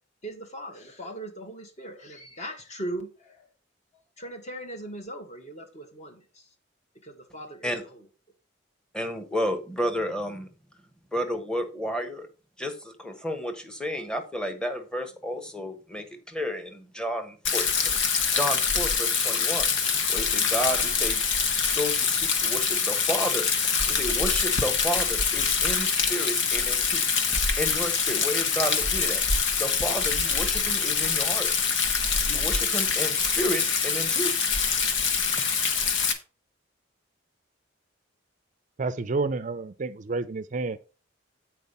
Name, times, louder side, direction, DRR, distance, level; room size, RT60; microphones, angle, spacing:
voice 1, 0.2-3.5 4.2-6.5 7.0-8.1, right 1 dB, 35° left, 1.5 m, -39 dB
voice 2, 8.9-10.5 11.1-12.3 12.6-17.9 18.3-19.7 20.1-21.2 21.7-23.4 23.9-27.0 27.6-29.2 29.6-31.5 32.2-34.3, equal, 5° left, 1.0 m, -31 dB
Rain, 17.4-36.1, left 5 dB, 70° left, 1.1 m, -25 dB
voice 3, 38.8-40.8, right 3 dB, 40° right, 0.5 m, -29 dB
8.2 x 4.6 x 5.4 m
head